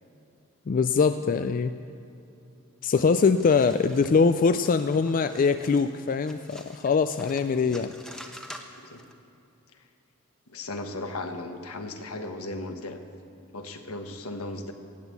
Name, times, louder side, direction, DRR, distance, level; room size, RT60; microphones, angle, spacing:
voice 1, 0.7-1.7 2.8-7.9, left 5 dB, 40° left, 10 dB, 0.4 m, -23 dB
sound 1, 3.2-9.1, equal, 5° left, 1.0 m, -47 dB
voice 2, 10.5-13.0 13.5-14.7, left 2 dB, 75° left, 6 dB, 1.3 m, -36 dB
15.0 x 9.2 x 8.2 m, 2.7 s
head